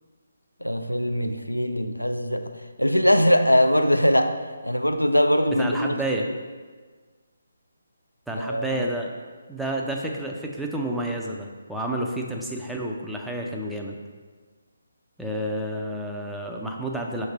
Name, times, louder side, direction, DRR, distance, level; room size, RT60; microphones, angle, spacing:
voice 1, 0.6-2.4 2.8-6.0 8.4-8.9, equal, 85° left, 6 dB, 0.5 m, -21 dB
voice 2, 5.6-6.3 8.3-9.1 9.5-14.0 15.2-17.3, right 1 dB, ahead, -1 dB, 0.5 m, -30 dB
6.3 x 3.3 x 5.3 m, 1.5 s
figure-of-eight pair, 145°, 0 cm